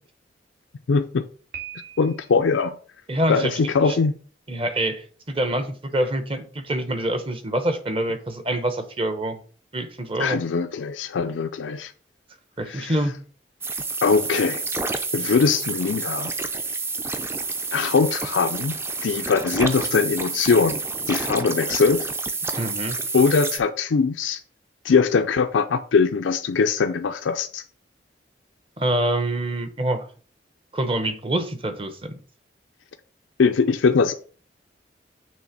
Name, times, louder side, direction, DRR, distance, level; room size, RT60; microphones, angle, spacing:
voice 1, 0.9-1.3 2.0-2.8 3.3-4.1 10.2-11.9 12.7-13.0 14.0-14.6 15.1-16.3 17.7-18.8 19.0-22.1 23.1-24.4 24.8-27.6 33.4-34.1, left 5 dB, 90° left, 0.4 m, -21 dB
Piano, 1.5-2.5, right 9 dB, 65° right, 1.8 m, -39 dB
voice 2, 3.1-3.5 3.8-4.0 4.5-9.4 9.7-10.4 12.6-13.1 22.6-23.0 28.8-30.1 30.7-32.1, right 1 dB, 30° right, 0.8 m, -26 dB
sound 1, 13.6-23.6, right 3 dB, 15° right, 0.4 m, -29 dB
6.3 x 3.4 x 5.8 m
head